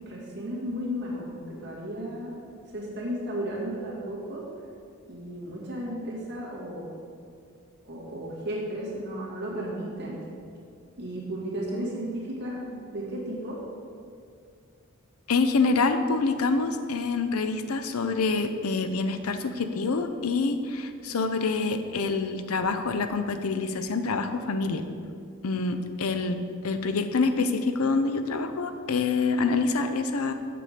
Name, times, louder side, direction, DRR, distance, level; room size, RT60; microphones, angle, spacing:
voice 1, 0.1-2.4 2.7-4.4 5.1-6.9 7.8-10.2 11.0-13.6, equal, 50° right, -5 dB, 2.1 m, -34 dB
voice 2, 15.3-24.8 25.4-26.4 26.6-30.3, left 4 dB, 90° left, 8 dB, 0.6 m, -26 dB
7.0 x 6.8 x 5.0 m, 2.3 s
head